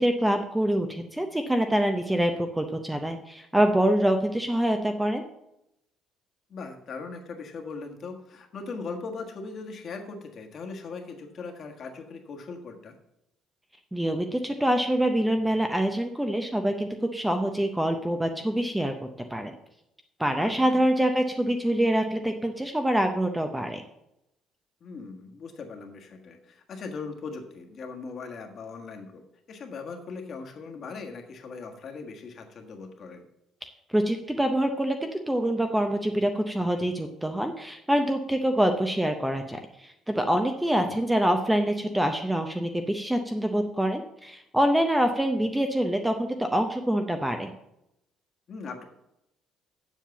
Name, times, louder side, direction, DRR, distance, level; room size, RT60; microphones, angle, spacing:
voice 1, 0.0-5.2 13.9-18.9 19.3-19.5 20.2-23.8 33.9-47.5, right 1 dB, 5° right, 6 dB, 0.6 m, -25 dB
voice 2, 6.5-13.0 20.4-20.8 24.8-29.2 29.5-33.3 40.7-41.0 48.5-48.8, left 4 dB, 40° left, 4 dB, 1.5 m, -39 dB
7.4 x 7.3 x 7.0 m, 0.84 s
cardioid pair, 155°, 0 cm